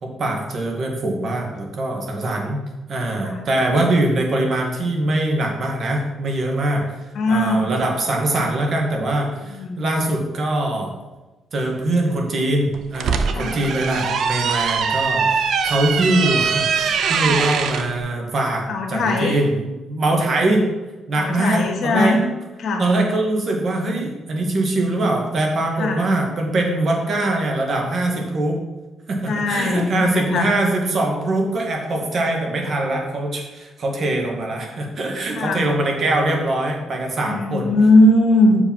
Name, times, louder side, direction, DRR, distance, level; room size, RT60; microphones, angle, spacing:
voice 1, 0.0-2.6 2.9-7.0 7.3-10.9 11.5-18.6 18.9-20.7 21.1-22.2 22.8-28.6 29.1-37.7, right 1 dB, 50° right, 1 dB, 1.9 m, -22 dB
voice 2, 7.1-7.6 9.5-9.8 13.3-13.6 18.7-19.3 21.1-22.2 22.6-22.9 25.8-26.0 29.3-30.5 35.4-35.7 37.2-38.6, left 2 dB, 65° left, 3 dB, 1.6 m, -19 dB
sound 1, 12.7-17.9, right 6 dB, 70° right, 0.7 m, -22 dB
6.5 x 5.2 x 5.5 m, 1.1 s
cardioid pair, 90°, 0 cm